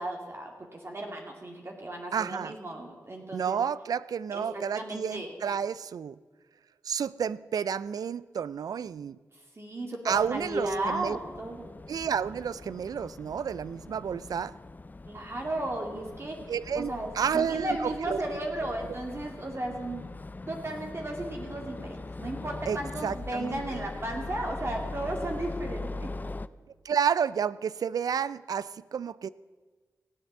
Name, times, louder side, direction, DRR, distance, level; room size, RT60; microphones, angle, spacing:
voice 1, 0.0-3.6 4.3-5.3 9.6-11.8 15.1-16.4 16.7-20.1 20.4-26.1, right 1 dB, 40° right, 1 dB, 2.2 m, -35 dB
voice 2, 2.1-2.5 3.3-6.2 6.8-9.2 10.0-11.2 11.9-14.5 16.5-16.9 17.1-18.2 22.7-23.6 26.8-29.3, right 7 dB, 75° right, 18 dB, 0.3 m, -30 dB
sound 1, 10.1-26.5, left 2 dB, 25° left, 0.4 m, -41 dB
16.5 x 8.0 x 7.2 m, 1.4 s
cardioid pair, 55°, 6 cm